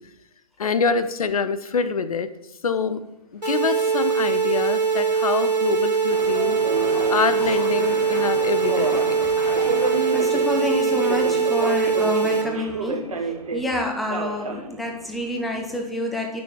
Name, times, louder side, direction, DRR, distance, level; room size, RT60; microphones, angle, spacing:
voice 1, 0.6-2.3 2.6-3.0 3.3-6.6 7.1-9.2, left 5 dB, 60° left, 11 dB, 0.7 m, -25 dB
sound 1, 2.9-3.5 4.1-4.2 5.2-6.1 6.4-10.4, left 3 dB, 25° left, 1.6 m, -38 dB
sound 2, 3.4-12.4, right 5 dB, 75° right, 1.5 m, -22 dB
Subway metro underground, 6.1-15.8, right 4 dB, 55° right, 1.2 m, -31 dB
voice 2, 10.1-16.4, left 1 dB, ahead, 1 dB, 0.6 m, -28 dB
8.7 x 6.2 x 4.6 m, 0.87 s
figure-of-eight pair, 125°, 21 cm